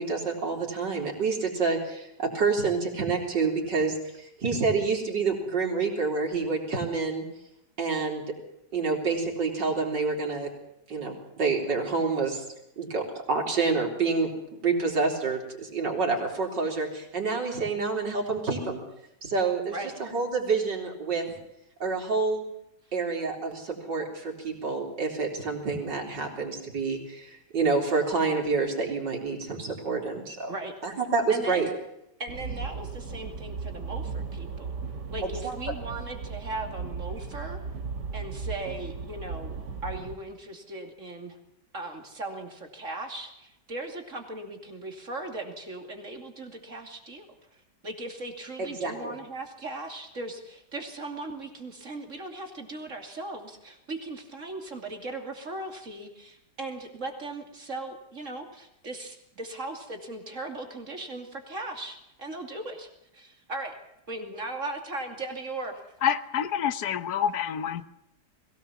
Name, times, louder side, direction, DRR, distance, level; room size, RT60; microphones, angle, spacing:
voice 1, 0.0-7.2 7.8-8.3 8.7-10.5 10.9-12.4 12.8-14.3 14.6-18.8 19.2-21.2 21.8-22.4 22.9-30.5 30.8-31.7 35.2-35.6 48.6-49.2, right 4 dB, 90° right, 1 dB, 4.5 m, -28 dB
voice 2, 31.3-31.7 32.2-34.7 35.1-37.6 38.1-39.6 39.8-41.4 41.7-47.3 47.8-63.7 64.1-65.8, right 2 dB, 45° right, 4 dB, 3.0 m, -38 dB
sound 1, 32.3-40.1, right 5 dB, 75° right, 2.4 m, -36 dB
voice 3, 66.0-67.8, left 9 dB, 65° left, 13 dB, 1.4 m, -27 dB
21.5 x 17.5 x 7.2 m, 0.83 s
omnidirectional pair, 1.9 m